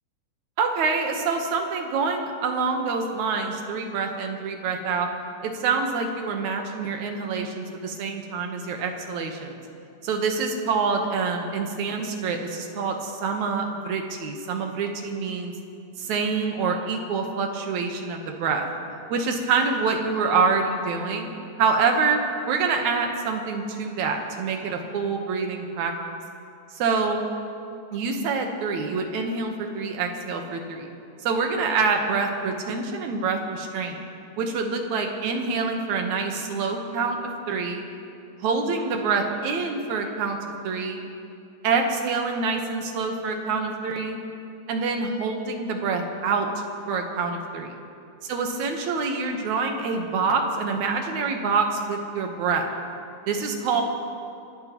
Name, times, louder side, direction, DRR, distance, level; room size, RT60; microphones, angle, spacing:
voice 1, 0.6-5.1 5.4-9.6 10.0-15.5 16.0-18.7 19.1-21.3 21.6-22.2 22.5-25.9 26.7-27.2 27.9-30.9 31.2-34.0 34.4-37.9 38.4-40.4 40.6-41.0 41.6-44.2 44.7-46.5 46.9-47.7 48.2-52.7 53.3-53.8, right 4 dB, 65° right, 3 dB, 2.4 m, -26 dB
27.0 x 13.0 x 3.0 m, 2.5 s
omnidirectional pair, 3.8 m